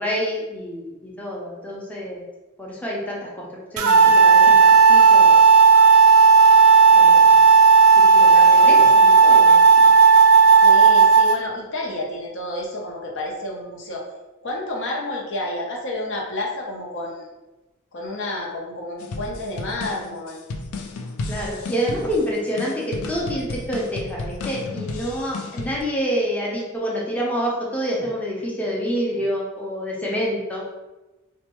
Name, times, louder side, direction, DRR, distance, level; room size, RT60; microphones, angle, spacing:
voice 1, 0.0-2.2 2.6-5.4 6.9-7.4 8.1-9.6 21.3-30.6, equal, 5° left, -4 dB, 0.6 m, -27 dB
sound 1, 3.8-11.4, right 5 dB, 75° right, 0.4 m, -12 dB
voice 2, 10.5-14.0 14.4-17.3 17.9-20.4, left 1 dB, 60° left, -1 dB, 0.8 m, -30 dB
sound 2, 19.0-25.8, left 3 dB, 90° left, 0.4 m, -33 dB
4.1 x 2.2 x 3.0 m, 1.1 s
head